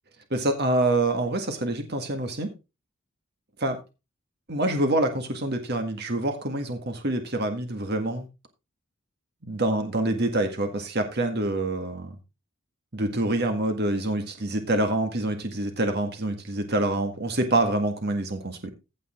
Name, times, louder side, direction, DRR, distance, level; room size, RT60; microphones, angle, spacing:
voice 1, 0.3-2.5 3.6-3.8 4.5-8.3 9.5-12.1 12.9-18.7, right 2 dB, 50° right, 5 dB, 1.8 m, -26 dB
15.5 x 5.4 x 3.7 m, 0.27 s
head